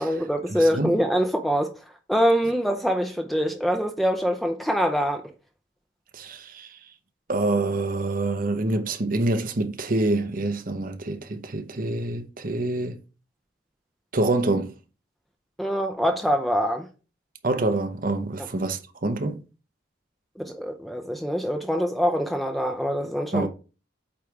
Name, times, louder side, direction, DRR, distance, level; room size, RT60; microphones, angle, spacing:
voice 1, 0.0-1.7 2.1-5.2 15.6-16.9 20.4-23.5, equal, ahead, 0.5 m, -24 dB
voice 2, 0.5-1.0 6.1-6.8 7.3-13.0 14.1-14.7 17.4-19.4 23.3-23.5, right 2 dB, 45° right, 0.8 m, -26 dB
8.5 x 3.2 x 4.7 m
head